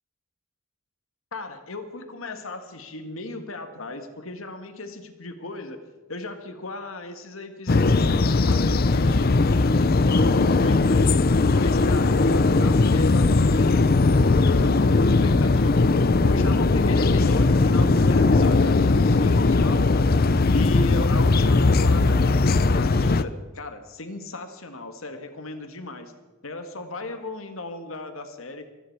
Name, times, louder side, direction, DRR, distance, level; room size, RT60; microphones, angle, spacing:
voice 1, 1.3-11.2 11.5-20.1 20.5-26.1 26.4-28.7, left 2 dB, 75° left, 7 dB, 1.8 m, -36 dB
sound 1, 7.7-23.2, left 3 dB, 45° left, 0.6 m, -19 dB
25.0 x 10.0 x 4.7 m, 1.2 s
head